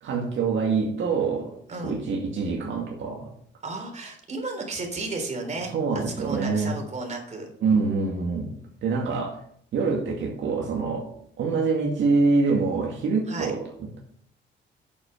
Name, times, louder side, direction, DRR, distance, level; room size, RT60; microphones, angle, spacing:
voice 1, 0.0-1.6 1.8-3.3 5.7-6.7 7.6-8.6 8.8-9.4 9.7-11.1 11.4-14.0, right 4 dB, 70° right, -1 dB, 2.1 m, -25 dB
voice 2, 1.7-2.0 3.6-7.5 13.3-13.5, right 3 dB, 35° right, 2 dB, 3.6 m, -33 dB
8.5 x 7.1 x 5.7 m, 0.63 s
cardioid pair, 90°, 20 cm